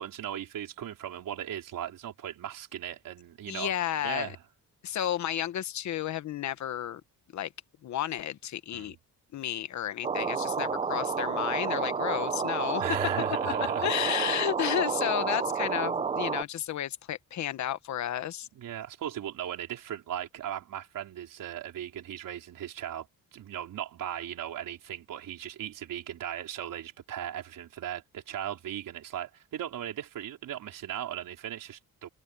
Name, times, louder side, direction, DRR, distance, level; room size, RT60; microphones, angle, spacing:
voice 1, 0.0-3.7 4.0-4.4 8.7-9.0 12.8-14.3 18.5-23.1 23.3-32.1, right 11 dB, 65° right, 4.1 m, -37 dB
voice 2, 3.5-4.4 4.8-7.0 7.3-7.5 7.8-8.9 9.3-12.8 13.8-18.5, left 11 dB, 55° left, 1.1 m, -32 dB
sound 1, 10.0-16.4, right 5 dB, 20° right, 0.4 m, -30 dB
cardioid pair, 180°, 35 cm